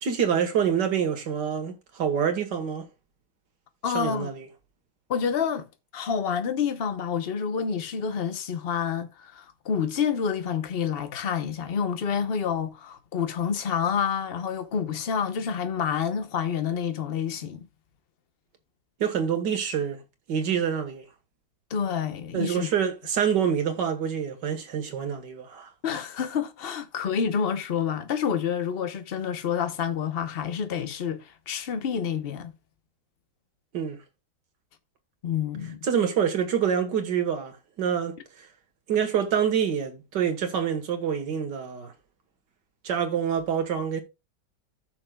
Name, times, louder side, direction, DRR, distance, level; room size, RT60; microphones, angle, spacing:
voice 1, 0.0-2.9 3.9-4.5 19.0-20.0 20.3-21.0 22.3-25.7 33.7-34.0 35.8-38.5 38.9-41.9 42.8-44.0, right 8 dB, 80° right, 2.1 m, -26 dB
voice 2, 3.8-4.3 5.1-5.7 5.9-17.7 21.7-22.7 25.8-32.5 35.2-35.9, left 7 dB, 40° left, 1.0 m, -28 dB
14.0 x 6.1 x 2.3 m
omnidirectional pair, 1.9 m